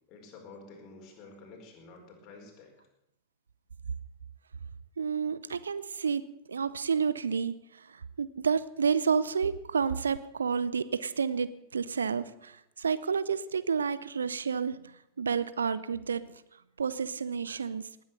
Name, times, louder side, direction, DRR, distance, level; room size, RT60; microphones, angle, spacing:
voice 1, 0.1-2.7, left 3 dB, 35° left, 1 dB, 4.6 m, -50 dB
voice 2, 5.0-16.4 16.8-17.9, right 6 dB, 70° right, 16 dB, 0.6 m, -30 dB
18.5 x 9.5 x 6.7 m, 0.82 s
figure-of-eight pair, 90°, 0 cm